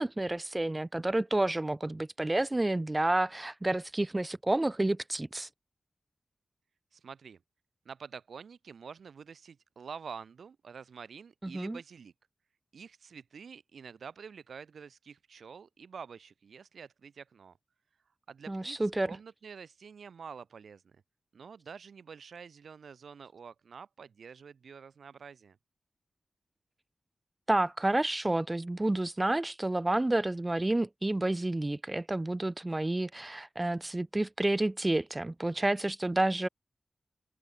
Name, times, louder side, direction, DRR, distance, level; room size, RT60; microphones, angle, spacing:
voice 1, 0.0-5.5 11.4-11.8 18.5-19.1 27.5-36.5, right 2 dB, 25° right, 1.3 m, -30 dB
voice 2, 6.9-7.4 7.8-12.1 12.7-17.6 18.3-21.0 21.3-25.6, right 6 dB, 85° right, 3.1 m, -48 dB
open air
cardioid pair, 55°, 0 cm